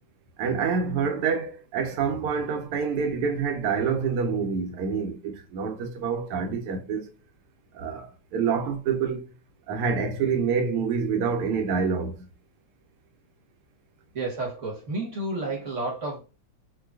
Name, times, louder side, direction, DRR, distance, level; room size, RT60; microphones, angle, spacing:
voice 1, 0.4-7.1 7.7-9.3 9.7-12.3, right 6 dB, 85° right, 1.6 m, -27 dB
voice 2, 14.1-16.2, right 2 dB, 50° right, 0.9 m, -31 dB
4.6 x 2.2 x 2.3 m
omnidirectional pair, 2.4 m